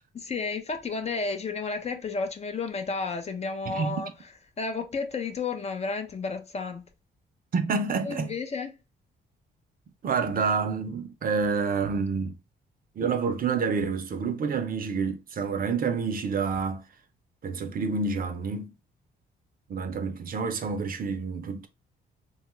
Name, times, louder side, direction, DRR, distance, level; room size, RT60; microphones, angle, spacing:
voice 1, 0.1-4.1 4.6-6.9 8.0-8.8, left 4 dB, 35° left, 0.5 m, -32 dB
voice 2, 3.7-4.0 7.5-8.3 10.0-12.3 13.0-16.8 17.4-18.7 19.7-21.7, right 5 dB, 45° right, 0.5 m, -28 dB
2.9 x 2.3 x 3.0 m
cardioid pair, 90°, 20 cm